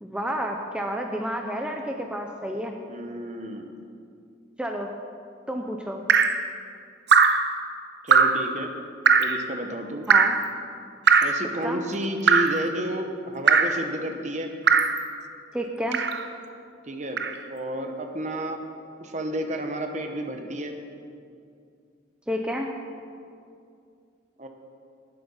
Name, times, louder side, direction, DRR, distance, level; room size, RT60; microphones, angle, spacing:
voice 1, 0.0-2.7 4.6-4.9 5.5-6.0 10.1-10.4 11.6-11.8 15.5-16.0 22.3-22.7, equal, 5° right, 2 dB, 0.7 m, -30 dB
voice 2, 2.9-3.8 8.0-8.7 9.2-10.1 11.2-14.5 16.8-17.2 17.5-18.6 19.0-20.7 24.4-24.5, right 1 dB, 40° right, 5 dB, 1.2 m, -31 dB
Drip, 6.1-6.4 7.1-7.5 8.1-8.5 9.1-9.4 10.1-10.4 11.1-11.4 12.3-12.6 13.5-13.8 14.7-15.0 15.9-16.3 17.2-17.3, right 5 dB, 60° right, 0.7 m, -19 dB
18.5 x 8.0 x 5.7 m, 2.4 s
head